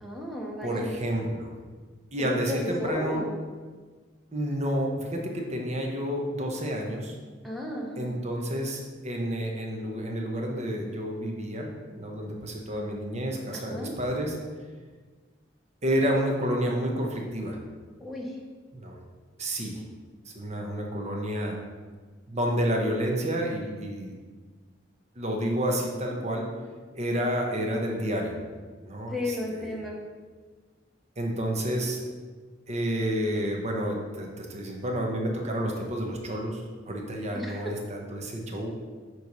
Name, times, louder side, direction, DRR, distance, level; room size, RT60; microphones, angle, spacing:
voice 1, 0.0-0.9 2.2-3.4 7.4-8.1 13.5-13.9 18.0-18.3 29.1-30.0 37.4-37.6, left 1 dB, ahead, -3 dB, 0.8 m, -34 dB
voice 2, 0.6-1.5 2.1-3.2 4.3-7.2 8.0-11.7 12.0-14.4 15.8-17.6 18.7-18.9 19.4-19.8 20.3-21.6 22.3-24.2 25.2-26.5 26.9-28.4 28.8-29.8 31.2-32.0 32.7-38.7, equal, 35° right, 0 dB, 1.0 m, -30 dB
7.7 x 3.2 x 5.4 m, 1.4 s
head